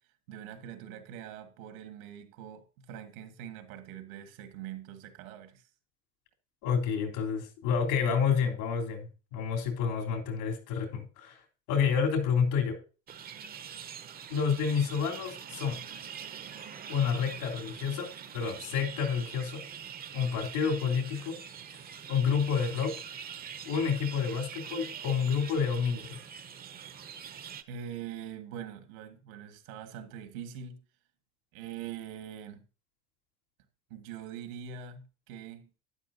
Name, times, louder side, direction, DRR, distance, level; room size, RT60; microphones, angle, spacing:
voice 1, 0.3-5.7 27.7-30.8 31.5-32.6 33.9-35.7, right 8 dB, 80° right, 1.8 m, -43 dB
voice 2, 6.6-12.8 14.3-15.8 16.9-18.1 18.3-19.7 20.1-21.4 22.1-23.0 23.6-26.2, left 6 dB, 80° left, 3.4 m, -29 dB
sound 1, 13.1-27.6, right 8 dB, 20° right, 0.6 m, -44 dB
12.0 x 9.8 x 2.7 m
supercardioid pair, 135°, 42 cm